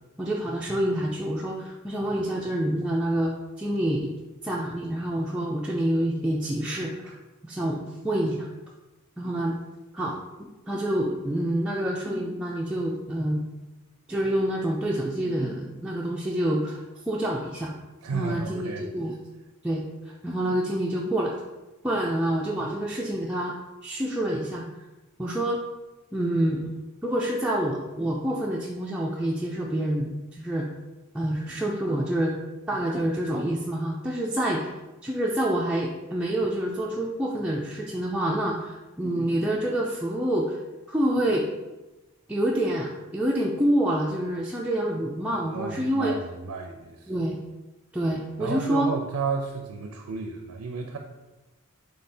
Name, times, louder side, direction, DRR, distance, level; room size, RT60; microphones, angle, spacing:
voice 1, 0.2-4.1 4.4-7.1 7.5-8.5 9.2-9.6 9.9-13.4 14.1-17.7 18.1-19.1 19.6-19.8 20.2-21.3 21.8-23.5 23.8-24.6 25.2-25.6 26.1-26.7 27.0-30.7 31.1-32.3 32.7-34.6 35.0-40.6 40.9-41.6 42.3-46.1 47.1-47.4 47.9-48.9, right 1 dB, 5° right, -4 dB, 0.3 m, -27 dB
voice 2, 18.0-18.9 45.5-47.1 48.4-51.0, right 4 dB, 85° right, 3 dB, 0.4 m, -32 dB
3.4 x 3.2 x 4.2 m, 1.1 s
head